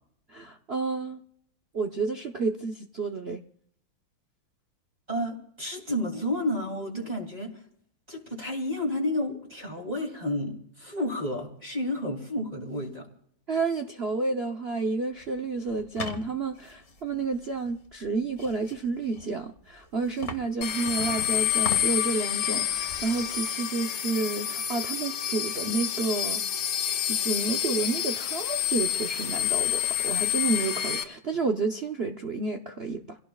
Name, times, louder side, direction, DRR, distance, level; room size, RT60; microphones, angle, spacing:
voice 1, 0.3-1.2 1.7-3.4 13.5-26.4 27.1-33.2, right 3 dB, 65° right, 0.6 m, -30 dB
voice 2, 5.1-7.6 8.1-13.1, left 1 dB, 20° right, 2.9 m, -31 dB
sound 1, 15.2-22.2 22.5-23.4, left 3 dB, 40° left, 1.5 m, -41 dB
sound 2, 20.6-31.0, left 11 dB, 80° left, 1.7 m, -28 dB
29.0 x 17.0 x 2.4 m
omnidirectional pair, 2.3 m